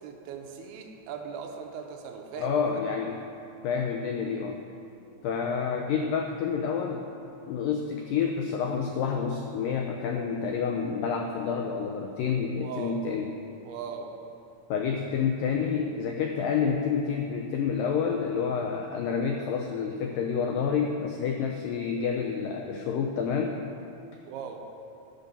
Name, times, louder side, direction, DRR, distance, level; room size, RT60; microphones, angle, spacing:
voice 1, 0.0-2.6 12.6-13.1 13.6-14.1 24.3-24.6, right 6 dB, 85° right, 2 dB, 2.7 m, -39 dB
voice 2, 2.4-3.2 3.6-4.6 5.2-7.1 7.5-13.3 14.7-23.6, left 6 dB, 85° left, 2 dB, 1.9 m, -29 dB
10.5 x 5.3 x 7.0 m, 2.6 s
omnidirectional pair, 4.6 m